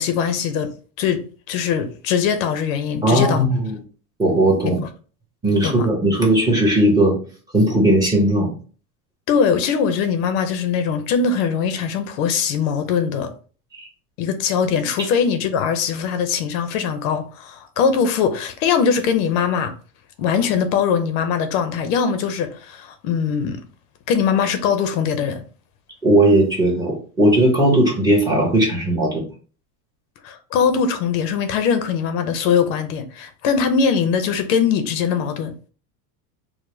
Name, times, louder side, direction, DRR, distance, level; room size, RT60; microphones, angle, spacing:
voice 1, 0.0-3.4 5.6-5.9 9.3-13.3 14.2-19.7 20.2-23.6 24.1-25.4 30.2-35.5, left 6 dB, 65° left, 0.7 m, -21 dB
voice 2, 3.0-3.8 4.2-4.8 5.4-7.2 7.5-8.5 13.7-13.9 26.0-29.2, right 1 dB, 10° right, 0.8 m, -17 dB
4.8 x 2.1 x 3.0 m
cardioid pair, 180°, 42 cm